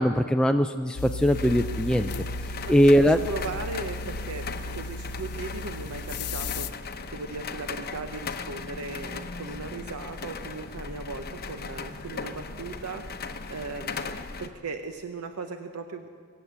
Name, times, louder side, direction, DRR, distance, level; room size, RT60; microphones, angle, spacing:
voice 1, 0.0-2.1 2.7-3.2, equal, 5° left, 5 dB, 0.3 m, -21 dB
sound 1, 1.0-6.7, left 2 dB, 80° left, 0.6 m, -35 dB
sound 2, 1.3-14.5, left 4 dB, 45° left, 0.8 m, -38 dB
voice 2, 3.0-4.4 4.7-14.1 14.4-16.1, right 3 dB, 80° right, 7 dB, 0.8 m, -38 dB
24.0 x 8.1 x 7.0 m, 2.1 s
head